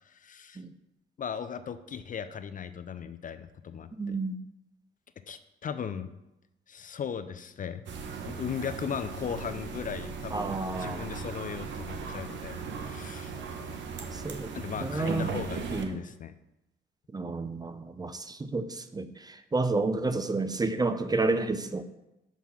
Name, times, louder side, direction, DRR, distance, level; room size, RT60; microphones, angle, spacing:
voice 1, 0.1-0.6 1.2-4.2 5.3-6.1 6.7-7.8 8.3-13.4 14.5-16.3, left 7 dB, 45° left, 11 dB, 0.5 m, -37 dB
voice 2, 4.0-4.4 10.3-11.0 14.1-14.5 14.8-15.3 15.7-16.0 17.1-21.8, right 3 dB, 20° right, 10 dB, 0.6 m, -30 dB
sound 1, 7.9-15.8, right 5 dB, 70° right, 1.0 m, -37 dB
6.1 x 5.5 x 5.8 m, 0.91 s
cardioid pair, 90°, 20 cm